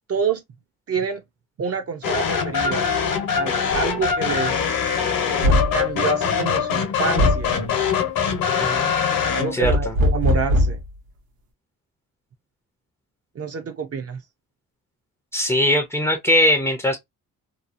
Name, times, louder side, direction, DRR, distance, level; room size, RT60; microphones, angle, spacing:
voice 1, 0.1-0.4 0.9-1.2 1.6-2.9 3.3-4.7 5.7-7.6 9.3-10.8 13.4-14.2, right 6 dB, 45° right, 0.5 m, -27 dB
sound 1, 2.0-9.6, left 7 dB, 70° left, 0.9 m, -23 dB
sound 2, 3.7-3.9 5.4-5.8 7.2-7.5 9.6-10.9, left 1 dB, 75° right, 0.9 m, -19 dB
voice 2, 9.5-9.9 15.3-17.0, left 1 dB, 5° left, 0.4 m, -20 dB
2.8 x 2.3 x 2.4 m
cardioid pair, 130°, 35 cm